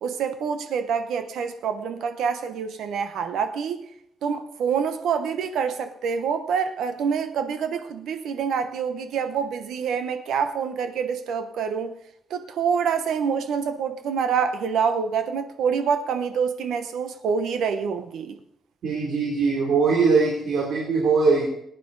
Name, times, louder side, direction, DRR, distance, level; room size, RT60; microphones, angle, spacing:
voice 1, 0.0-3.8 4.2-11.9 12.3-18.4, right 6 dB, 90° right, 1.0 m, -26 dB
voice 2, 18.8-21.5, right 4 dB, 70° right, 3.2 m, -21 dB
19.5 x 10.0 x 4.0 m
cardioid pair, 145°, 0 cm